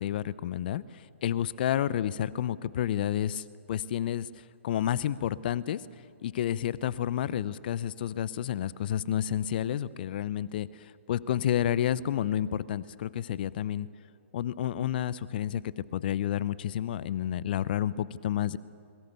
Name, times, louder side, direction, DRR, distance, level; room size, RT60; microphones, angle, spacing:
voice 1, 0.0-4.3 4.6-5.8 6.2-13.9 14.3-18.6, left 11 dB, 45° left, 19 dB, 0.7 m, -30 dB
28.0 x 22.5 x 6.8 m, 2.3 s
figure-of-eight pair, 135°, 7 cm